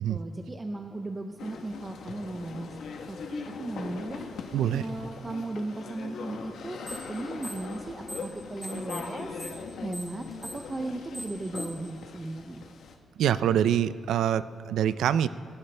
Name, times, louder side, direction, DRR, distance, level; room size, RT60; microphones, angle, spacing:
voice 1, 0.1-2.8 3.1-6.8 7.1-9.5 9.8-10.3 10.5-12.6, right 2 dB, 15° right, 4 dB, 0.6 m, -36 dB
sound 1, 1.4-13.0, left 5 dB, 70° left, 1.1 m, -41 dB
voice 2, 4.5-4.8 13.2-15.3, right 10 dB, 90° right, 15 dB, 0.4 m, -25 dB
sound 2, 6.9-7.1 7.4-8.3 8.6-11.9, right 1 dB, ahead, 3.5 m, -40 dB
23.5 x 11.5 x 3.3 m, 2.5 s
wide cardioid pair, 165°, 0 cm